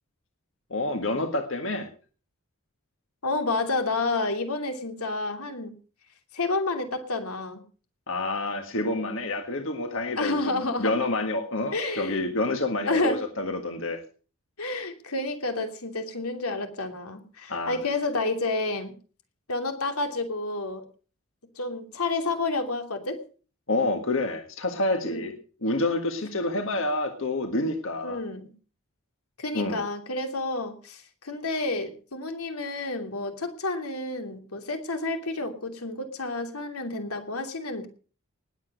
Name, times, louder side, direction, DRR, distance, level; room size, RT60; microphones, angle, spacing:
voice 1, 0.7-1.9 8.1-14.0 17.5-17.8 23.7-25.3 25.6-28.2 29.5-29.8, left 2 dB, 60° left, 5 dB, 1.8 m, -28 dB
voice 2, 3.2-5.7 6.3-7.6 10.2-10.9 11.7-12.2 12.8-13.2 14.6-19.0 19.5-20.8 21.6-23.2 25.0-25.3 28.0-28.5 29.4-37.9, left 2 dB, 90° left, 6 dB, 3.0 m, -30 dB
20.0 x 8.2 x 6.6 m, 0.39 s
head